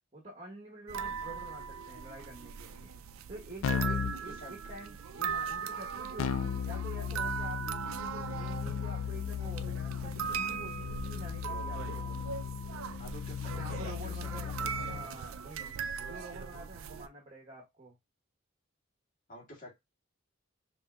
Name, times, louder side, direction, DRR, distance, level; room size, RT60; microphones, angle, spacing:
voice 1, 0.1-2.9 3.3-12.4 13.5-15.7 16.0-18.0, right 2 dB, 30° right, 1.2 m, -47 dB
sound 1, 0.9-17.1, right 6 dB, 85° right, 0.4 m, -39 dB
Keyboard (musical), 3.6-4.2 6.2-15.1, left 8 dB, 75° left, 0.3 m, -36 dB
voice 2, 4.1-4.8 13.0-15.1 19.3-19.8, left 1 dB, 40° left, 1.9 m, -50 dB
5.4 x 3.1 x 2.3 m
head